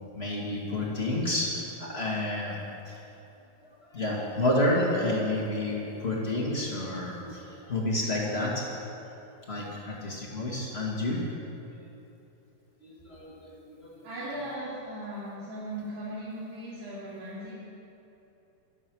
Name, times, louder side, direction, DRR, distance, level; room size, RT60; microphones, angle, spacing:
voice 1, 0.1-2.6 2.8-3.0 3.9-8.7 9.5-11.3 12.8-14.0, left 1 dB, 35° left, -3 dB, 1.0 m, -30 dB
voice 2, 14.0-17.5, right 1 dB, 80° right, -11 dB, 5.4 m, -38 dB
24.0 x 8.8 x 6.2 m, 2.9 s
omnidirectional pair, 4.6 m